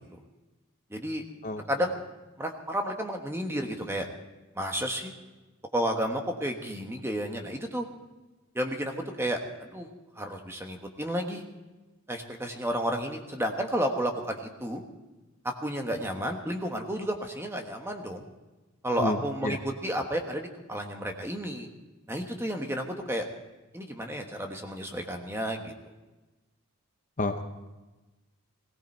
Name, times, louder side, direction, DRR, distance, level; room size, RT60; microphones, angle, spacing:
voice 1, 0.9-1.2 1.7-1.9 2.4-4.1 4.5-5.1 5.7-7.9 8.5-9.9 10.2-11.4 12.1-14.8 15.4-18.3 18.8-21.7 22.1-23.3 23.7-25.7, equal, 10° right, 3 dB, 1.4 m, -32 dB
voice 2, 1.4-1.9 19.0-19.6 27.2-27.4, left 2 dB, 35° left, 7 dB, 0.8 m, -31 dB
18.0 x 17.0 x 4.4 m, 1.1 s
head